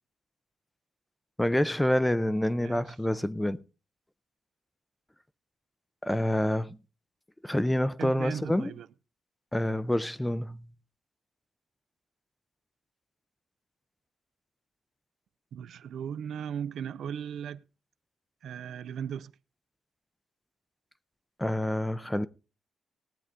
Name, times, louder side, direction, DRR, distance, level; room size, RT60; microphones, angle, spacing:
voice 1, 1.4-3.6 6.0-6.8 7.4-8.7 9.5-10.7 21.4-22.3, left 1 dB, 5° left, 0.6 m, -27 dB
voice 2, 8.0-8.9 15.5-17.6 18.4-19.3, right 8 dB, 75° right, 0.5 m, -37 dB
18.5 x 8.1 x 3.7 m
cardioid pair, 120°, 0 cm